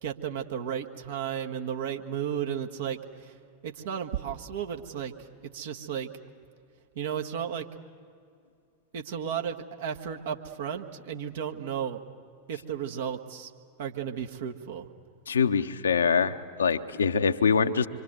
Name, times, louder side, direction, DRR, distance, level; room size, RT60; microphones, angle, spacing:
voice 1, 0.0-3.3 3.6-5.1 5.5-6.1 6.9-7.7 8.9-12.0 12.5-13.5 13.8-14.9, right 8 dB, 55° right, 3 dB, 1.5 m, -34 dB
voice 2, 15.3-17.9, left 6 dB, 70° left, 9 dB, 0.9 m, -24 dB
26.0 x 24.5 x 8.0 m, 2.3 s
figure-of-eight pair, 90°, 0 cm